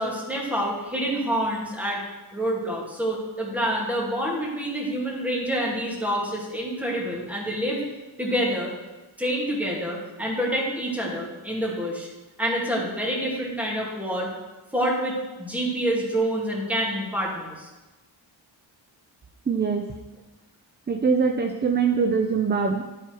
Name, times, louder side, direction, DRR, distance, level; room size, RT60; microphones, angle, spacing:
voice 1, 0.0-2.0 2.3-7.8 8.2-8.7 9.2-12.1 12.4-14.3 14.7-17.7, equal, 5° right, -4 dB, 2.6 m, -27 dB
voice 2, 19.5-19.9 20.9-22.8, right 5 dB, 25° right, 5 dB, 0.5 m, -23 dB
12.0 x 4.5 x 4.7 m, 1.1 s
cardioid pair, 100°, 46 cm